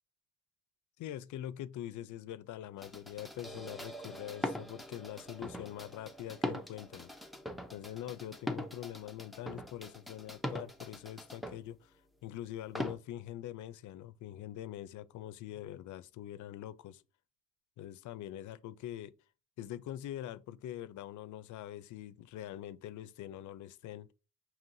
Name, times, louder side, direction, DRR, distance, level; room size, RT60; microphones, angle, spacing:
voice 1, 1.0-7.1 7.7-17.0 17.8-19.1 19.6-24.1, left 12 dB, 70° left, 0.5 m, -44 dB
sound 1, 2.8-11.6 12.8-13.0, left 1 dB, ahead, 0.5 m, -41 dB
5.5 x 3.0 x 2.5 m
cardioid pair, 135°, 31 cm